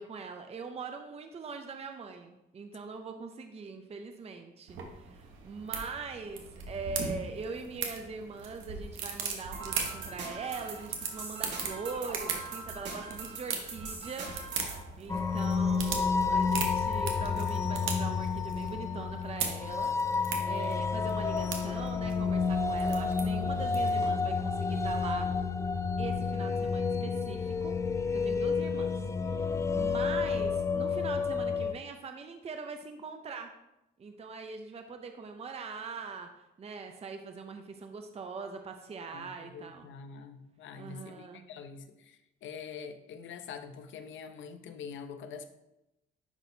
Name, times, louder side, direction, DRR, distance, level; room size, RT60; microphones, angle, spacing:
voice 1, 0.0-14.3 14.6-25.3 26.0-27.8 28.1-33.5 34.0-36.3 36.6-39.9 40.7-41.4, right 4 dB, 30° right, 5 dB, 0.6 m, -42 dB
sound 1, 4.7-24.1, right 5 dB, 90° right, 1.0 m, -40 dB
sound 2, 9.5-14.8, right 3 dB, 60° right, 2.0 m, -42 dB
sound 3, 15.1-31.7, left 5 dB, 15° left, 0.3 m, -30 dB
voice 2, 39.1-45.6, left 6 dB, 75° left, 9 dB, 0.7 m, -45 dB
10.5 x 4.1 x 2.7 m, 0.91 s
cardioid pair, 90°, 20 cm